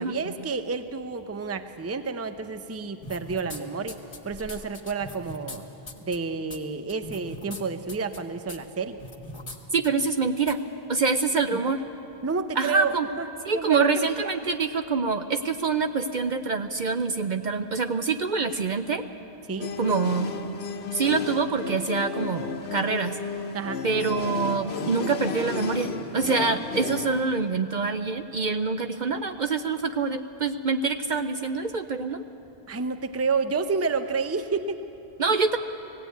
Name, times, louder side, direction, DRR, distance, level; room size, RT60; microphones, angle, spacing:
voice 1, 0.0-4.0 4.2-5.7 6.0-9.0 12.2-13.3 13.5-14.3 19.5-19.7 23.5-23.8 32.7-34.8, right 4 dB, 15° right, 9 dB, 0.6 m, -30 dB
sound 1, 3.0-3.6 3.9-5.6 5.9-6.2 6.5-6.6 6.9-7.6 7.9-8.2 8.5-8.6 9.0-9.6 9.8-9.9 10.5-10.6, left 1 dB, 60° left, 1.9 m, -40 dB
voice 2, 9.7-10.6 10.9-11.8 12.6-13.1 13.5-19.0 19.8-20.3 20.9-23.1 23.8-32.2 35.2-35.6, right 4 dB, 50° right, 8 dB, 0.7 m, -25 dB
sound 2, 19.6-27.3, left 5 dB, 80° left, 1.2 m, -33 dB
18.0 x 16.0 x 9.2 m, 2.9 s
omnidirectional pair, 1.0 m